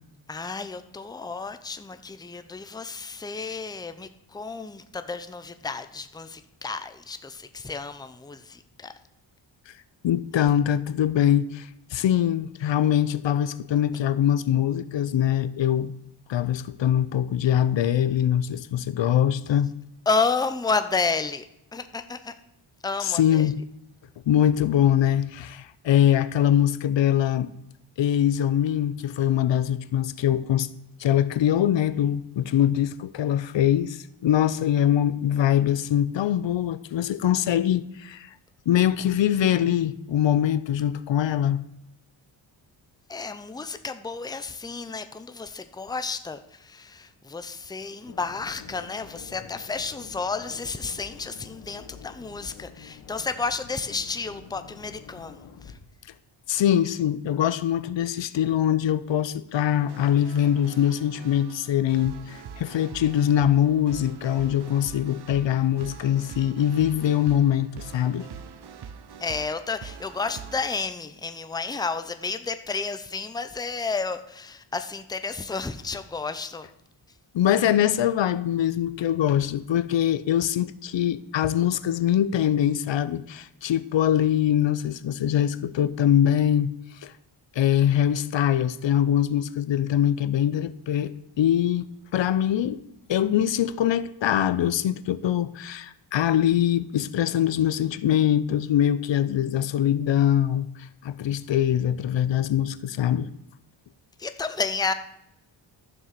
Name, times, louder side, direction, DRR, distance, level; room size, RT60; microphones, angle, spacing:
voice 1, 0.3-8.9 20.1-21.4 21.7-22.3 22.8-23.5 43.1-55.8 69.2-76.7 104.2-104.9, left 4 dB, 10° left, 0.6 m, -31 dB
voice 2, 10.0-15.9 16.3-19.7 23.0-23.5 24.3-27.5 28.0-30.7 31.0-38.3 38.7-41.6 56.5-68.3 77.3-87.1 87.5-92.8 93.1-103.3, left 10 dB, 65° left, 0.7 m, -23 dB
sound 1, 48.1-55.7, left 6 dB, 85° left, 1.6 m, -47 dB
sound 2, 59.7-70.7, right 7 dB, 55° right, 1.0 m, -44 dB
12.5 x 7.2 x 6.6 m
wide cardioid pair, 120°, 48 cm